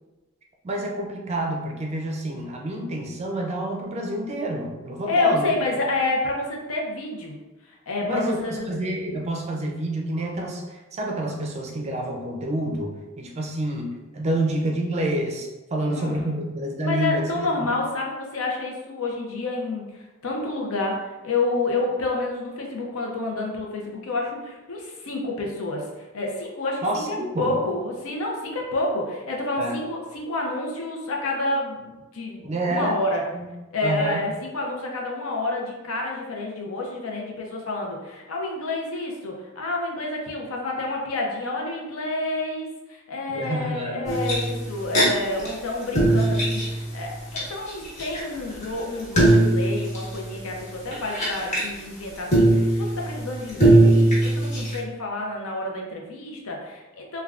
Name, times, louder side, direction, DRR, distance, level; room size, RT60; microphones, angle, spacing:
voice 1, 0.6-5.5 8.0-17.7 26.8-27.5 29.6-29.8 32.4-33.0 33.3-33.5 33.8-34.2 43.3-44.0, right 1 dB, 30° right, 1 dB, 0.4 m, -28 dB
voice 2, 5.1-7.4 7.7-8.7 15.8-16.4 16.8-33.2 33.7-57.2, left 2 dB, 75° left, 0 dB, 0.6 m, -29 dB
sound 1, 44.0-45.0 45.4-45.5 45.8-47.4 47.7-51.7 52.3-54.8, right 1 dB, 35° left, 1.1 m, -20 dB
3.3 x 2.2 x 2.4 m, 1.1 s
head